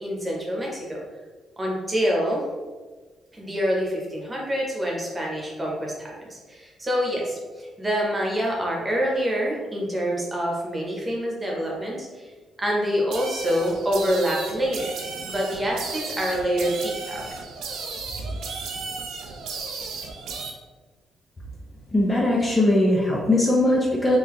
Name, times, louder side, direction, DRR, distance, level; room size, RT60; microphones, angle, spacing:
voice 1, 0.0-1.0 1.6-2.4 3.3-12.3 12.6-14.9 15.2-17.3, equal, 15° right, -2 dB, 1.0 m, -26 dB
sound 1, 13.1-20.5, right 4 dB, 90° right, 0.5 m, -35 dB
voice 2, 21.9-24.2, left 1 dB, 20° left, -3 dB, 0.5 m, -20 dB
3.8 x 2.8 x 3.0 m, 1.3 s
cardioid pair, 130°, 0 cm